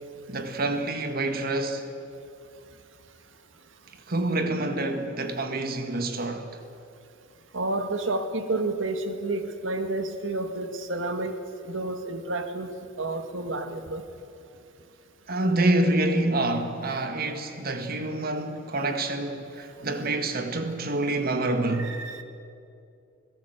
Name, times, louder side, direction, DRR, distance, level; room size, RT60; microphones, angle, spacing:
voice 1, 0.3-1.9 4.1-6.5 15.3-22.0, right 2 dB, 50° right, 1.9 m, -27 dB
voice 2, 7.5-11.4 11.6-12.7 13.0-14.0 21.7-22.2, right 2 dB, 80° right, 1.9 m, -30 dB
28.5 x 17.0 x 8.0 m
head